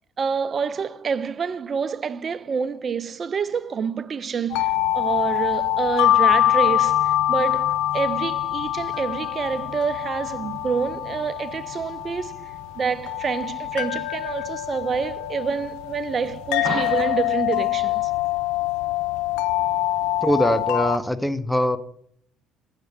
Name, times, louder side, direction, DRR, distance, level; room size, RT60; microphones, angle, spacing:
voice 1, 0.2-12.5 12.8-18.1, right 6 dB, 45° right, 0.3 m, -27 dB
sound 1, 4.5-21.0, left 13 dB, 75° left, 0.4 m, -24 dB
voice 2, 20.2-21.8, equal, 5° left, 0.7 m, -22 dB
7.9 x 7.2 x 3.5 m
hypercardioid pair, 60°, 0 cm